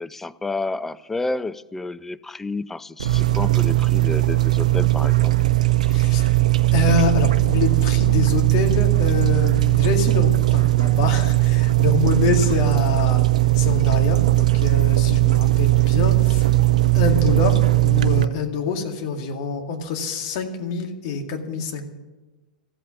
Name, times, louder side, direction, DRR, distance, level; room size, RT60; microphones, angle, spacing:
voice 1, 0.0-5.5 5.8-6.1 15.2-15.4, left 3 dB, 5° left, 0.4 m, -30 dB
sound 1, 3.0-18.2, right 17 dB, 60° right, 0.7 m, -18 dB
voice 2, 5.9-6.4 6.7-13.2 13.5-16.5 16.9-21.8, left 5 dB, 45° left, 2.2 m, -26 dB
14.5 x 8.5 x 9.5 m
figure-of-eight pair, 95°, 4 cm